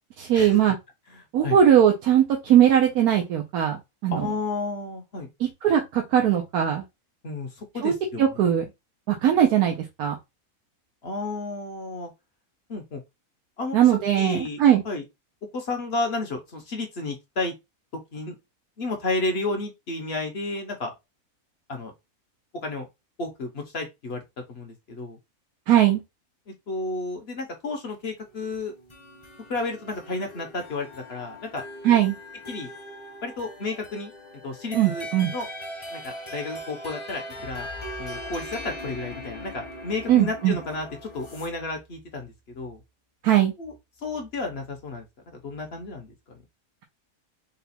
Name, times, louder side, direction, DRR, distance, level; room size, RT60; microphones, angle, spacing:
voice 1, 0.2-0.7 1.3-4.3 5.4-6.8 7.8-7.9 8.2-8.6 9.1-10.2 13.7-14.8 25.7-26.0 31.8-32.1 34.7-35.3 40.1-40.6 43.2-43.5, right 10 dB, 90° right, 1.2 m, -20 dB
voice 2, 1.1-1.6 4.1-5.3 7.2-8.2 11.0-12.1 12.7-13.0 13.6-13.8 14.2-15.0 15.5-17.5 18.1-18.3 18.8-20.9 21.7-21.9 22.6-22.9 23.2-24.2 24.5-25.2 26.5-28.7 29.5-31.6 32.5-32.7 33.2-34.1 34.4-35.1 35.3-35.5 35.9-37.7 38.0-42.8 43.6-43.7 44.0-46.1, left 3 dB, 50° left, 1.0 m, -32 dB
sound 1, 28.5-41.5, equal, 25° left, 0.7 m, -40 dB
4.0 x 2.3 x 4.2 m
omnidirectional pair, 1.6 m